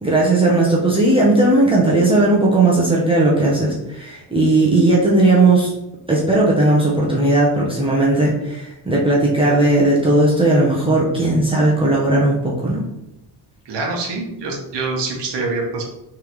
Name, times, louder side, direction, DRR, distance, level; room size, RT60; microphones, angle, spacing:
voice 1, 0.0-5.7 6.1-12.8, right 2 dB, 10° right, -6 dB, 0.7 m, -16 dB
voice 2, 13.6-15.8, right 3 dB, 70° right, 0 dB, 1.2 m, -25 dB
3.6 x 3.4 x 3.1 m, 0.90 s
cardioid pair, 110°, 44 cm